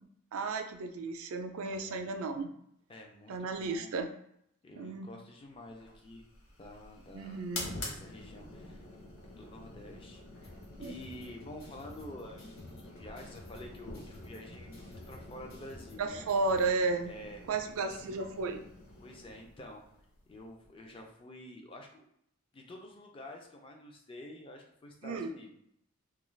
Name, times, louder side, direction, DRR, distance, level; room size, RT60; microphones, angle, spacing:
voice 1, 0.3-2.5 3.3-4.1 4.7-5.1 7.1-7.7 10.8-10.9 16.0-17.1 17.5-18.6 25.0-25.3, right 3 dB, 70° right, 7 dB, 0.3 m, -33 dB
voice 2, 1.6-2.0 2.9-4.0 4.6-6.3 6.6-7.4 7.8-8.8 9.3-16.3 17.1-17.4 17.7-18.0 19.0-19.9 20.3-22.0 22.5-25.5, left 1 dB, 25° left, 1 dB, 0.4 m, -49 dB
sound 1, 5.7-21.0, left 2 dB, 70° left, 0.7 m, -48 dB
sound 2, 10.4-16.7, left 1 dB, 45° left, 1.2 m, -54 dB
2.3 x 2.3 x 3.1 m, 0.73 s
head